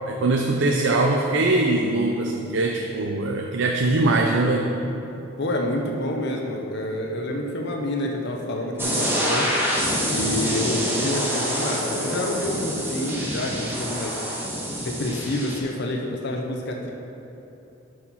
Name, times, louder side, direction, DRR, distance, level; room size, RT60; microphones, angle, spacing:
voice 1, 0.1-4.7, right 2 dB, 65° right, 1 dB, 0.5 m, -22 dB
voice 2, 5.4-9.5 10.1-14.2 14.8-16.9, left 1 dB, 60° left, 1 dB, 0.7 m, -28 dB
sound 1, 8.8-15.6, equal, 10° right, 1.4 m, -26 dB
9.8 x 4.8 x 5.6 m, 3.0 s
head